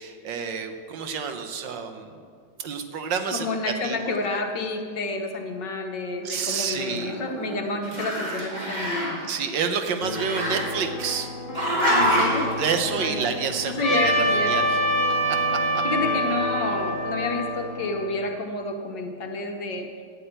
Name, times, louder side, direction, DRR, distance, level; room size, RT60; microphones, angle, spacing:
voice 1, 0.0-2.2 2.6-3.5 3.8-4.2 6.2-7.2 9.2-11.3 12.6-14.8 15.7-15.8, right 6 dB, 65° right, 7 dB, 1.5 m, -29 dB
voice 2, 3.3-9.2 11.9-12.5 12.9-13.2 13.8-14.5 15.8-19.9, left 3 dB, 60° left, 3 dB, 1.6 m, -29 dB
Growling, 6.3-7.6 7.8-9.3 10.1-11.1 11.5-12.5, equal, 20° right, 2.1 m, -26 dB
sound 1, 10.0-18.0, left 2 dB, 40° left, 2.1 m, -35 dB
Trumpet, 13.8-18.3, right 1 dB, 15° left, 2.3 m, -25 dB
10.0 x 8.4 x 8.8 m, 2.1 s
omnidirectional pair, 2.3 m